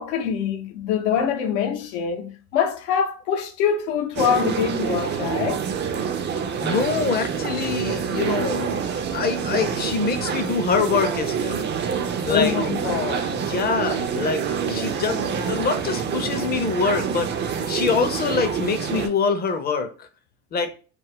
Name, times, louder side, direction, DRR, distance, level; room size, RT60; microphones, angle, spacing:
voice 1, 0.0-5.6 12.3-13.3, left 7 dB, 75° left, 0.7 m, -24 dB
sound 1, 4.2-19.1, right 7 dB, 30° right, 0.4 m, -26 dB
voice 2, 6.6-11.7 12.3-12.5 13.5-17.3 17.7-20.1 20.5-20.7, left 5 dB, 25° left, 0.5 m, -25 dB
2.4 x 2.0 x 3.4 m
hypercardioid pair, 85°, 36 cm